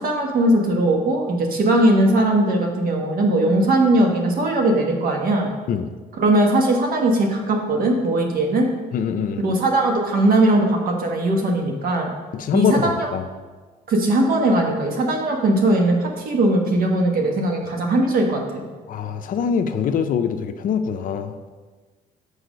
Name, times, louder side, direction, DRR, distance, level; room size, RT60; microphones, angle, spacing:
voice 1, 0.0-5.5 6.2-8.7 9.4-12.1 12.5-13.1 13.9-18.6, right 1 dB, 60° right, 1 dB, 1.4 m, -19 dB
voice 2, 8.9-9.4 12.3-13.3 18.9-21.3, left 7 dB, 55° left, 9 dB, 0.6 m, -23 dB
6.4 x 4.9 x 5.2 m, 1.3 s
cardioid pair, 110°, 17 cm